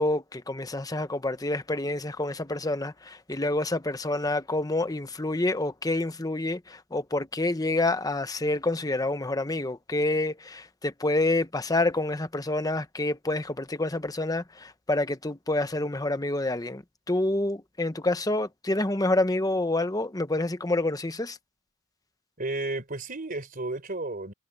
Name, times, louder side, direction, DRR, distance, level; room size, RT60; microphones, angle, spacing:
voice 1, 0.0-21.4, left 2 dB, 20° left, 0.9 m, -28 dB
voice 2, 22.4-24.3, right 2 dB, 45° right, 3.9 m, -32 dB
head